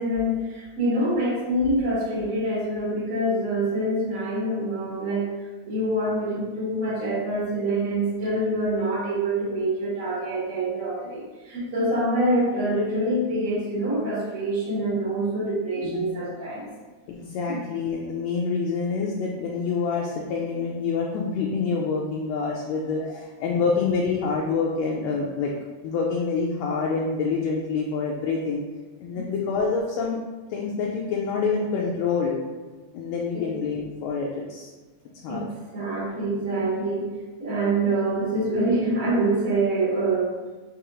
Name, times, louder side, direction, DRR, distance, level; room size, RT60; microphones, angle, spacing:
voice 1, 0.0-5.3 5.6-16.7 17.5-17.6 23.5-23.6 29.2-29.3 33.3-33.5 35.3-37.1 37.4-40.3, right 1 dB, 45° right, -6 dB, 1.0 m, -25 dB
voice 2, 15.8-16.2 17.1-25.5 25.8-28.6 29.0-30.2 30.5-32.4 32.9-34.7 35.2-35.5, left 5 dB, 80° left, -2 dB, 1.6 m, -27 dB
4.8 x 3.3 x 3.0 m, 1.3 s
omnidirectional pair, 3.4 m